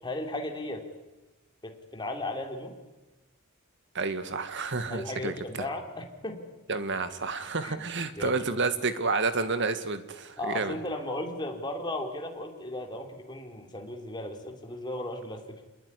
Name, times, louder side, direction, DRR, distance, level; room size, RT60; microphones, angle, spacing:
voice 1, 0.0-0.8 1.6-2.7 4.9-6.5 7.6-7.9 8.2-8.4 10.4-15.6, left 1 dB, 20° left, 3 dB, 3.5 m, -36 dB
voice 2, 3.9-5.7 6.7-10.8, right 4 dB, 55° right, 10 dB, 2.0 m, -30 dB
27.5 x 21.0 x 10.0 m, 1.1 s
head